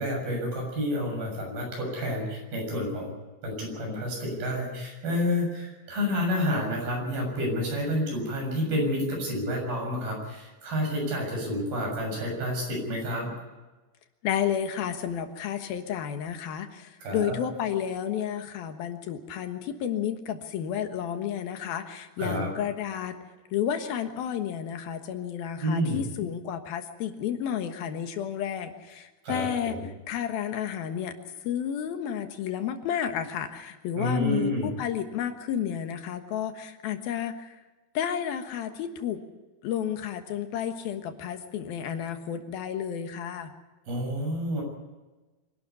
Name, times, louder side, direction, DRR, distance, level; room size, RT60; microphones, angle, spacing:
voice 1, 0.0-3.1 3.4-13.3 17.0-17.4 22.2-22.5 25.6-26.0 29.2-29.9 34.0-34.7 43.9-44.6, equal, 75° right, 0 dB, 9.0 m, -29 dB
voice 2, 14.2-23.2 23.5-29.8 30.1-31.1 31.4-37.6 37.9-39.2 39.6-43.5, left 9 dB, 80° left, 7 dB, 3.3 m, -31 dB
25.0 x 12.0 x 9.6 m, 1.2 s
omnidirectional pair, 4.2 m